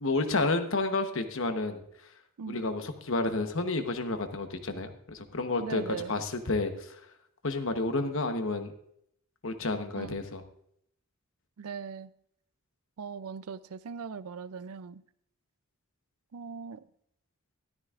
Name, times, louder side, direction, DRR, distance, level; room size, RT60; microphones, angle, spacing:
voice 1, 0.0-1.8 2.5-6.9 7.4-8.7 9.4-10.4, left 2 dB, 60° left, 1.1 m, -30 dB
voice 2, 5.6-6.2 9.9-10.2 11.6-12.1 13.0-15.0 16.3-16.9, right 6 dB, 75° right, 0.5 m, -40 dB
13.5 x 13.0 x 2.5 m
head